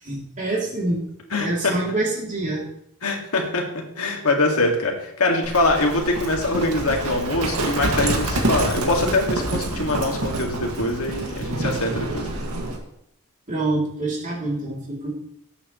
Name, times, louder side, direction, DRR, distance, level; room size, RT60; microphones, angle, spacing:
voice 1, 0.0-1.1 1.4-2.7 13.5-15.1, right 2 dB, 35° right, -3 dB, 2.9 m, -26 dB
voice 2, 1.3-1.7 3.0-3.6 4.0-12.3, left 2 dB, 70° left, 1 dB, 2.1 m, -23 dB
Livestock farm animals working animals, 5.4-12.8, right 2 dB, 80° right, 2.0 m, -27 dB
18.5 x 8.2 x 3.1 m, 0.76 s
head